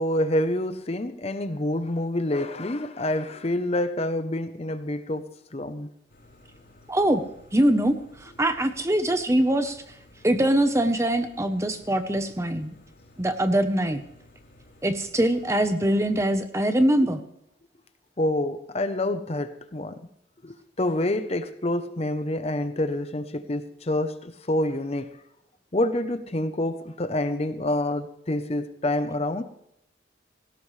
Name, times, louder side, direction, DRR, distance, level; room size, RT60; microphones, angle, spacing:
voice 1, 0.0-5.9 18.2-20.0 20.4-25.1 25.7-29.4, left 1 dB, 35° left, 0.7 m, -27 dB
sound 1, 6.1-16.3, left 1 dB, 50° left, 5.6 m, -54 dB
voice 2, 6.9-7.2 7.5-9.8 10.2-12.7 13.2-14.0 14.8-17.2, right 1 dB, 15° right, 0.8 m, -23 dB
18.0 x 16.5 x 3.3 m
head